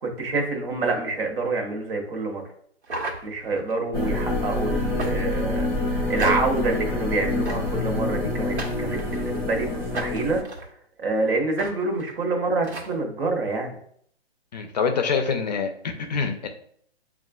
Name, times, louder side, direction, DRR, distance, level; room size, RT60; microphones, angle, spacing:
voice 1, 0.0-2.4 3.2-10.4 11.0-13.7, right 3 dB, 60° right, 2 dB, 1.1 m, -27 dB
sound 1, 2.8-3.7 5.0-5.5 6.2-6.7 7.5-7.9 8.6-9.4 9.9-10.7 11.6-11.7 12.0-12.1 12.6-12.9, right 2 dB, 90° right, 1.2 m, -34 dB
sound 2, 3.9-10.4, left 2 dB, 10° right, 0.6 m, -27 dB
voice 2, 14.5-16.5, left 5 dB, 40° left, 5 dB, 0.4 m, -25 dB
7.1 x 2.4 x 2.3 m, 0.64 s
hypercardioid pair, 155°, 32 cm